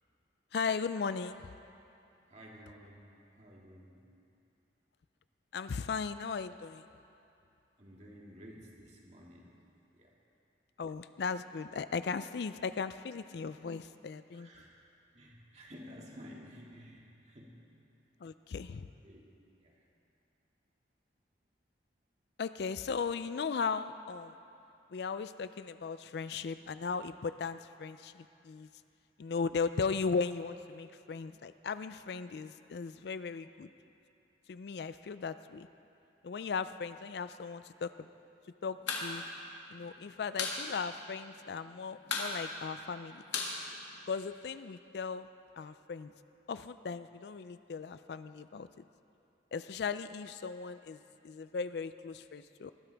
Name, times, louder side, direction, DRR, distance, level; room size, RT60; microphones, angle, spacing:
voice 1, 0.5-1.5 5.5-6.8 10.8-14.5 18.2-18.9 22.4-24.4 24.9-28.7 29.2-33.7 34.5-35.7 36.2-38.1 38.6-39.2 39.7-43.2 44.1-45.3 45.6-46.1 46.5-48.7 49.5-52.7, left 5 dB, 60° left, 12 dB, 0.4 m, -37 dB
voice 2, 2.3-3.1 3.4-4.0 7.8-9.5 9.9-10.1 14.3-14.7 15.1-17.6 19.0-19.3 19.6-19.7 24.5-24.7, equal, 35° right, -3 dB, 2.1 m, -52 dB
sound 1, 38.7-39.1 39.4-39.5 39.8-40.6 40.9-41.0 41.3-41.7 42.0-44.4, left 4 dB, 80° left, 1.9 m, -36 dB
20.5 x 14.5 x 3.5 m, 2.7 s
head